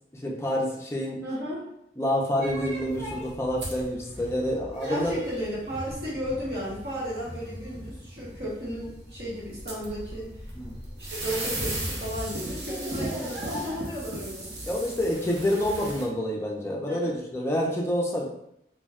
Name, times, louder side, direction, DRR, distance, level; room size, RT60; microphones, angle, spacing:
voice 1, 0.1-1.2 2.0-5.2 10.5-10.7 14.7-18.2, equal, 15° left, -2 dB, 0.4 m, -28 dB
voice 2, 1.2-1.6 4.9-10.5 11.1-14.5 16.9-17.1, equal, 70° right, -8 dB, 1.0 m, -34 dB
sound 1, 2.4-16.0, right 1 dB, 90° right, 0.7 m, -37 dB
2.2 x 2.1 x 3.4 m, 0.77 s
head